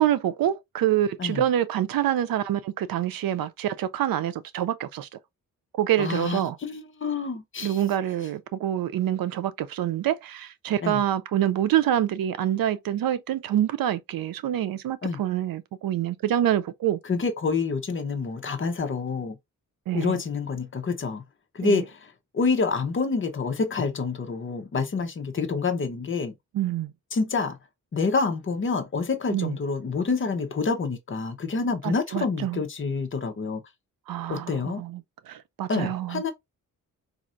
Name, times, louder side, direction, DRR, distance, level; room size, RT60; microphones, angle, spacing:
voice 1, 0.0-5.1 5.8-6.6 7.6-17.0 19.9-20.2 21.6-21.8 26.5-26.9 29.3-29.6 31.8-32.6 34.1-35.0 35.3-36.3, right 11 dB, 85° right, 0.5 m, -26 dB
voice 2, 6.0-7.8 10.8-11.0 15.0-15.2 17.0-19.4 19.9-21.2 21.5-26.3 27.1-27.6 27.9-33.6 34.3-34.8 35.7-36.3, left 4 dB, 35° left, 0.8 m, -27 dB
4.2 x 2.5 x 2.4 m
wide cardioid pair, 150°, 34 cm